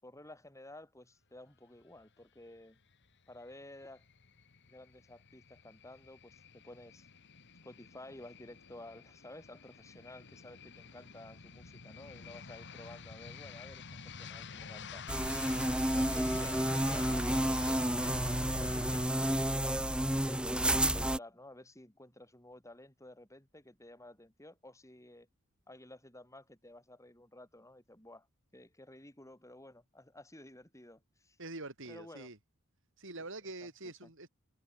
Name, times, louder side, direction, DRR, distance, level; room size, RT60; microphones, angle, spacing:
voice 1, 0.0-2.8 3.3-4.1 4.7-7.1 7.6-15.5 15.8-25.3 25.7-28.3 28.5-31.4 31.9-32.3 33.6-34.1, left 1 dB, 15° left, 7.7 m, -53 dB
sound 1, 3.3-19.1, left 4 dB, 55° left, 1.8 m, -48 dB
sound 2, 15.1-21.2, right 1 dB, 5° right, 1.3 m, -31 dB
voice 2, 31.4-32.4 33.0-34.3, right 2 dB, 60° right, 5.0 m, -45 dB
head